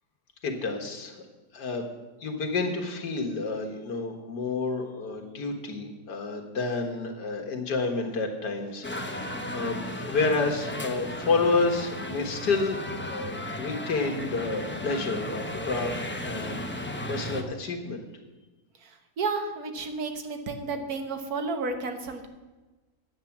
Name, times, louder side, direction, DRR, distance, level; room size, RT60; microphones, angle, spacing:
voice 1, 0.4-1.2 1.5-1.9 2.2-18.0, left 3 dB, 85° left, 3 dB, 2.1 m, -30 dB
sound 1, 8.8-17.4, left 1 dB, 15° left, 0.4 m, -35 dB
voice 2, 18.8-22.3, right 4 dB, 65° right, 6 dB, 1.6 m, -32 dB
10.0 x 8.0 x 7.2 m, 1.2 s
omnidirectional pair, 1.7 m